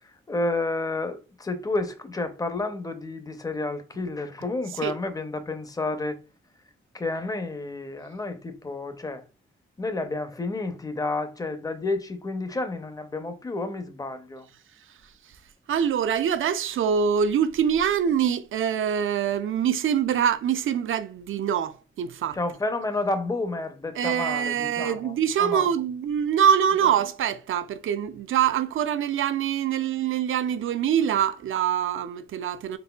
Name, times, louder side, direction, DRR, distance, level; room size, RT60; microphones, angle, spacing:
voice 1, 0.3-6.2 6.9-9.2 9.8-14.5 22.3-25.7, left 2 dB, 15° left, 0.5 m, -30 dB
voice 2, 15.7-22.4 24.0-32.8, right 8 dB, 75° right, 0.4 m, -24 dB
4.0 x 3.5 x 2.2 m
wide cardioid pair, 145°, 21 cm